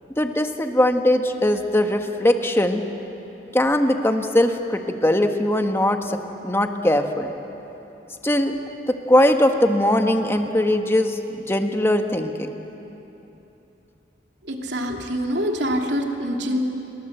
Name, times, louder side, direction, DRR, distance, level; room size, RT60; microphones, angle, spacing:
voice 1, 0.2-2.8 3.5-6.2 6.4-7.3 8.2-8.6 8.9-12.5, left 1 dB, 15° left, 5 dB, 1.4 m, -20 dB
voice 2, 14.4-16.6, equal, 80° right, 2 dB, 2.8 m, -25 dB
28.5 x 24.0 x 8.0 m, 3.0 s
head